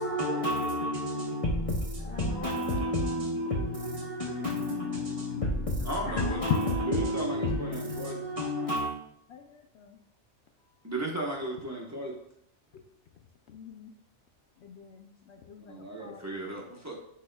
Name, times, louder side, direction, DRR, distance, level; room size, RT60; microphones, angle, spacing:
voice 1, 0.0-9.0, left 1 dB, 35° left, 0.6 m, -30 dB
voice 2, 5.8-8.2 10.8-12.1 15.6-17.0, right 1 dB, 15° right, 0.9 m, -35 dB
voice 3, 9.3-10.0 12.7-12.8 13.5-13.9 14.6-16.3, left 6 dB, 70° left, 0.8 m, -50 dB
10.5 x 4.2 x 2.2 m
omnidirectional pair, 1.2 m